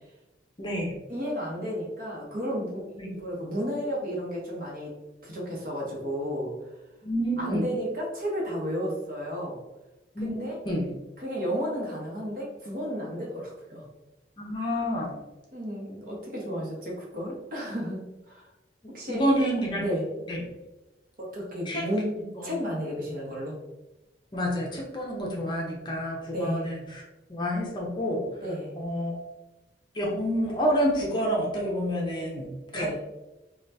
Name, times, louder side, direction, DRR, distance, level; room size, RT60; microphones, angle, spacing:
voice 1, 0.6-1.0 3.0-3.1 7.0-7.6 10.2-10.9 14.4-15.1 19.1-19.8 20.3-20.4 21.7-21.8 22.4-22.5 24.3-27.0 27.3-28.2 28.8-29.1 30.0-32.9, equal, 25° left, -2 dB, 0.6 m, -28 dB
voice 2, 1.1-4.9 5.2-6.5 7.4-9.6 10.2-10.6 11.2-13.8 15.5-18.5 18.9-19.3 19.8-20.1 21.2-23.6 26.3-26.7 28.4-28.7 32.7-33.0, equal, 50° right, -3 dB, 0.9 m, -32 dB
2.8 x 2.3 x 3.3 m, 1.0 s
head